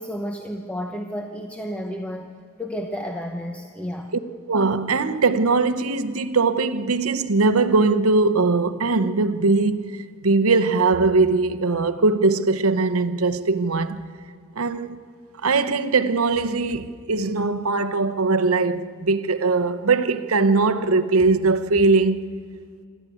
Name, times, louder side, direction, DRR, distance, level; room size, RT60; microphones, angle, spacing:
voice 1, 0.0-2.3 2.6-4.1, equal, 5° left, 0.9 m, -31 dB
voice 2, 4.5-14.0 14.6-15.0 15.4-22.3, right 3 dB, 75° right, 0.9 m, -20 dB
26.0 x 13.0 x 9.2 m
head